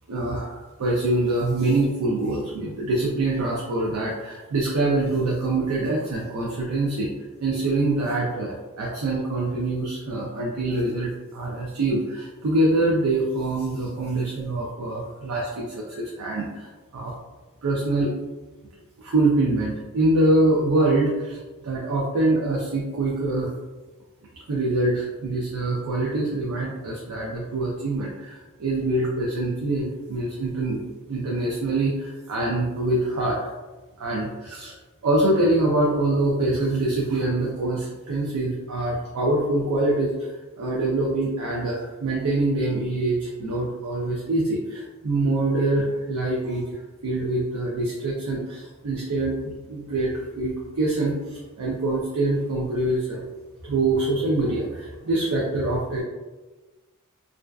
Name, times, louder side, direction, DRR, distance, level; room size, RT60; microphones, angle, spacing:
voice 1, 0.1-7.1 7.4-16.7 16.9-17.1 17.6-18.1 19.0-23.5 24.5-30.8 31.1-33.4 34.0-34.7 35.0-40.3 40.6-46.8 47.0-53.3 53.6-56.0, right 2 dB, 80° right, -3 dB, 0.4 m, -24 dB
2.4 x 2.2 x 2.2 m, 1.2 s
head